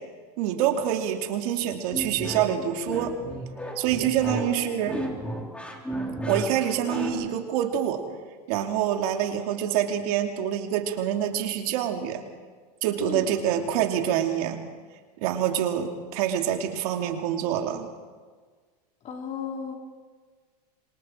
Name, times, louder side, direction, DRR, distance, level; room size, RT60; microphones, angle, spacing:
voice 1, 0.4-3.1 3.8-5.0 6.3-8.0 8.5-12.2 12.8-14.6 15.2-17.9, right 10 dB, 65° right, 4 dB, 2.8 m, -26 dB
sound 1, 1.9-7.1, right 1 dB, 5° left, 3.6 m, -33 dB
voice 2, 4.3-4.6 13.0-13.3 19.0-19.7, left 6 dB, 35° left, 2 dB, 3.8 m, -35 dB
26.5 x 24.5 x 4.6 m, 1.5 s
supercardioid pair, 125°, 21 cm